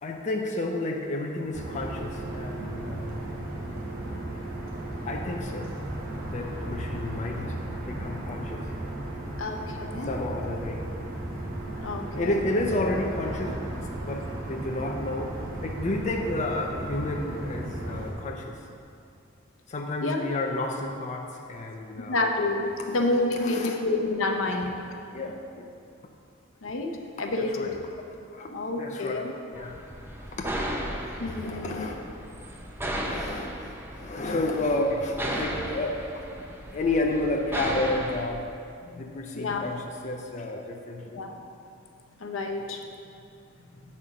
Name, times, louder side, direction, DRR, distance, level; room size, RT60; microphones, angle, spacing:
voice 1, 0.0-3.2 5.0-5.8 6.1-8.7 10.0-10.9 12.1-15.3 15.6-18.6 19.7-22.2 23.4-23.8 24.5-24.6 25.1-25.7 27.4-27.7 28.3-28.5 28.7-29.8 30.3-30.5 31.4-32.0 32.4-32.5 33.0-36.0 36.7-38.5 38.9-41.2, left 2 dB, 35° left, 1 dB, 0.5 m, -31 dB
sound 1, 1.5-18.1, right 1 dB, 50° right, 1.2 m, -35 dB
voice 2, 9.4-10.1 11.7-12.3 20.0-20.3 22.1-24.9 26.6-26.9 27.2-27.7 28.5-29.2 31.2-31.9 38.8-39.0 39.3-39.7 41.1-41.3 42.2-42.8, left 2 dB, 75° left, 3 dB, 0.7 m, -29 dB
sound 2, 29.5-38.3, right 1 dB, 10° right, 0.6 m, -35 dB
7.8 x 4.3 x 6.1 m, 2.5 s
head